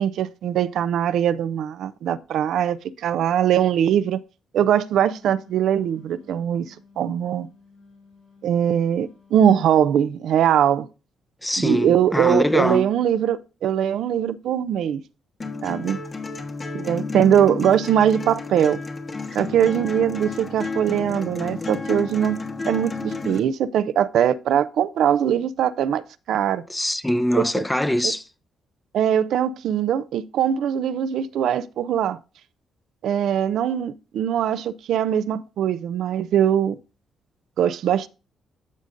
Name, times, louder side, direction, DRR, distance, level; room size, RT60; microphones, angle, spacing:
voice 1, 0.0-4.2 4.5-7.5 8.4-10.9 11.6-15.0 15.6-16.0 16.7-18.8 19.3-22.4 22.7-26.0 26.3-26.6 27.3-27.4 28.0-28.1 28.9-32.2 33.0-36.8 37.6-38.1, right 9 dB, 75° right, 0.4 m, -21 dB
Wind instrument woodwind instrument, 4.8-9.6, left 4 dB, 85° left, 4.3 m, -53 dB
voice 2, 11.4-12.9 26.7-28.2, left 1 dB, 10° left, 0.6 m, -22 dB
sound 1, 15.4-23.4, left 3 dB, 35° left, 1.2 m, -31 dB
13.5 x 5.1 x 2.5 m
cardioid pair, 90°, 0 cm